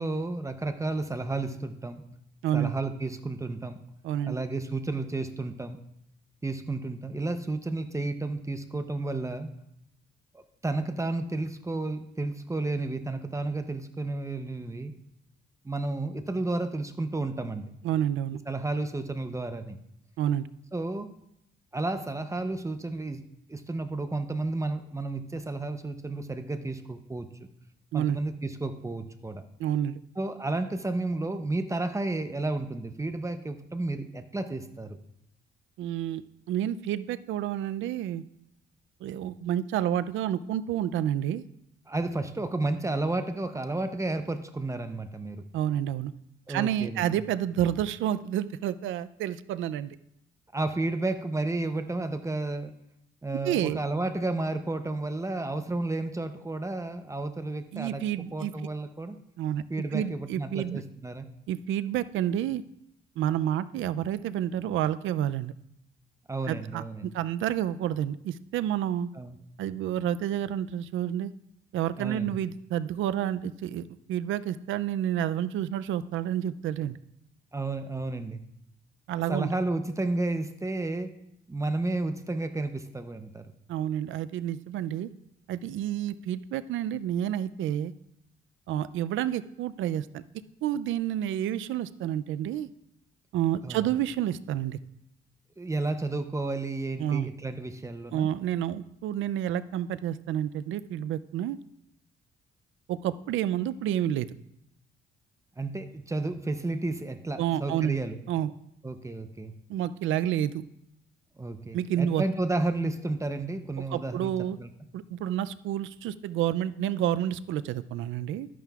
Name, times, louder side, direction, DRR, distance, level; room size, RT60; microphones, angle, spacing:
voice 1, 0.0-2.0 2.5-3.8 4.2-5.8 6.4-9.5 10.3-14.9 15.6-17.6 18.5-19.8 20.7-21.1 21.7-23.2 23.5-27.3 27.9-29.4 30.2-35.0 41.9-45.4 46.5-47.2 50.5-52.7 53.2-58.0 58.3-59.2 59.7-61.3 66.3-67.1 69.1-69.4 72.0-72.4 77.5-78.4 79.3-81.1 81.5-83.5 93.6-93.9 95.6-98.3 105.6-108.2 108.8-109.5 111.4-114.3 114.6-114.7, right 2 dB, 15° right, 9 dB, 0.7 m, -32 dB
voice 2, 4.0-4.4 17.8-18.4 20.2-20.5 27.9-28.2 29.6-30.0 35.8-36.2 36.5-38.2 39.0-41.4 45.5-46.1 46.5-50.0 53.4-53.8 57.7-58.5 59.4-59.6 59.9-60.8 61.5-62.6 63.2-65.5 66.5-69.1 69.6-71.3 71.7-77.0 79.1-79.5 83.7-85.1 85.5-87.9 88.7-90.2 90.6-92.7 93.3-94.8 97.0-97.3 98.1-101.6 102.9-104.3 107.4-108.0 108.3-108.5 109.7-110.6 111.7-112.2 113.9-114.6 114.9-118.5, right 11 dB, 80° right, 15 dB, 0.4 m, -29 dB
12.5 x 9.1 x 2.4 m, 0.79 s
cardioid pair, 90°, 20 cm